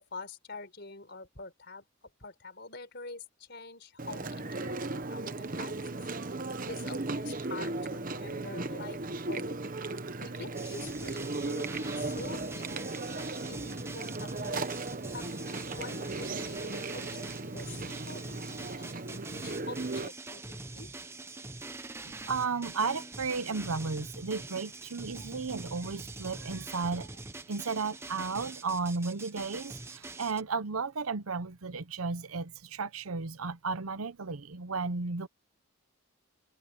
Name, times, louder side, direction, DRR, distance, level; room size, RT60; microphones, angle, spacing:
voice 1, 0.0-6.0 6.4-9.7 10.2-13.0 13.5-14.7 15.1-20.9, left 3 dB, 50° left, 4.8 m, -46 dB
Chewing mastication, 4.0-20.1, right 2 dB, 40° right, 1.0 m, -36 dB
sound 1, 10.5-30.4, right 2 dB, 10° right, 0.7 m, -44 dB
voice 2, 22.1-27.2 27.5-35.3, right 4 dB, 85° right, 0.9 m, -34 dB
head